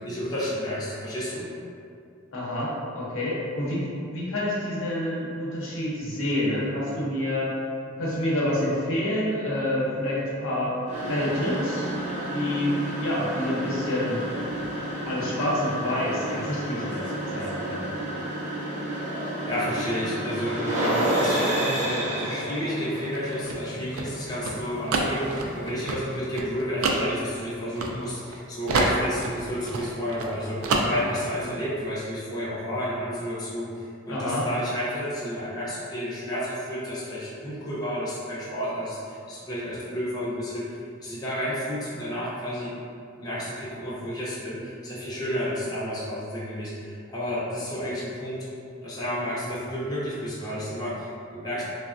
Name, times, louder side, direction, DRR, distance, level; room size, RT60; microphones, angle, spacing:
voice 1, 0.0-1.5 19.5-42.7 43.2-48.4 48.8-51.6, equal, 20° left, -9 dB, 0.5 m, -31 dB
voice 2, 2.3-7.5 8.0-10.7 11.0-11.9 12.3-12.7 13.0-14.2 15.0-17.9 34.1-34.5, left 1 dB, 75° left, -6 dB, 0.7 m, -28 dB
sound 1, 10.9-25.8, right 1 dB, 35° right, 0.6 m, -30 dB
sound 2, 23.1-28.4 28.7-30.3 30.6-31.3, right 3 dB, 85° right, 0.3 m, -28 dB
3.3 x 2.0 x 2.4 m, 2.4 s
head